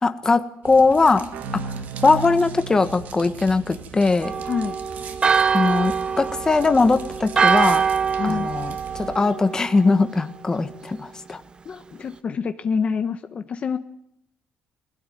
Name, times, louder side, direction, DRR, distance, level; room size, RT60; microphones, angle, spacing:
voice 1, 0.0-1.3 1.5-1.7 2.0-4.3 5.5-7.8 8.2-11.4, left 3 dB, 20° left, 9 dB, 1.6 m, -20 dB
sound 1, 0.6-9.2, right 7 dB, 60° right, 2.5 m, -40 dB
sound 2, 1.3-4.8, right 4 dB, 80° right, 1.8 m, -35 dB
Church bell, 4.2-9.9, right 6 dB, 30° right, 0.9 m, -23 dB
voice 2, 4.4-4.8 8.2-8.5 11.6-13.8, left 6 dB, 40° left, 9 dB, 1.3 m, -26 dB
20.0 x 16.5 x 9.3 m, 0.78 s
cardioid pair, 125°, 3 cm